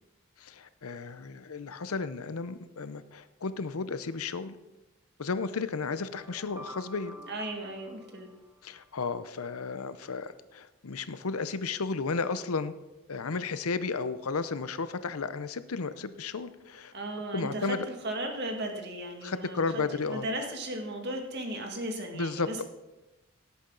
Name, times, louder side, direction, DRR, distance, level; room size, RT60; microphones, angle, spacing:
voice 1, 0.4-4.6 5.2-7.2 8.6-12.7 13.1-16.9 17.3-17.9 19.2-20.2 22.1-22.6, left 4 dB, 85° left, 13 dB, 0.7 m, -33 dB
sound 1, 5.9-8.9, equal, 10° right, 1.0 m, -50 dB
voice 2, 7.3-8.3 16.9-22.6, right 1 dB, 50° right, 2 dB, 2.1 m, -36 dB
17.0 x 8.5 x 3.9 m, 1.0 s
head